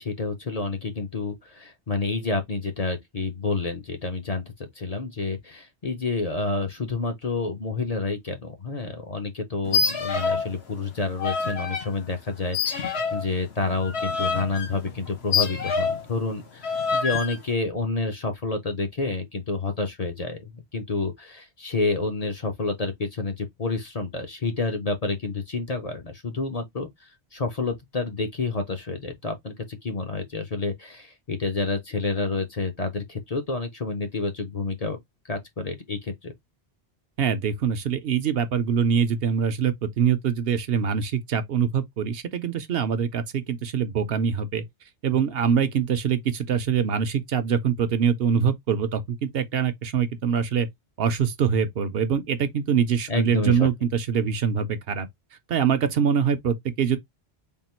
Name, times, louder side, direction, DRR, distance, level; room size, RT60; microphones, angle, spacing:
voice 1, 0.0-35.0 35.3-36.3 53.1-53.7, left 3 dB, 40° left, 0.7 m, -29 dB
sound 1, 9.6-10.5 10.8-11.9 12.5-16.1 16.6-17.4, left 5 dB, 70° left, 1.2 m, -27 dB
voice 2, 37.2-44.6 45.0-50.7 51.0-55.1 55.5-57.0, right 7 dB, 65° right, 0.8 m, -24 dB
3.6 x 2.3 x 4.3 m
omnidirectional pair, 1.1 m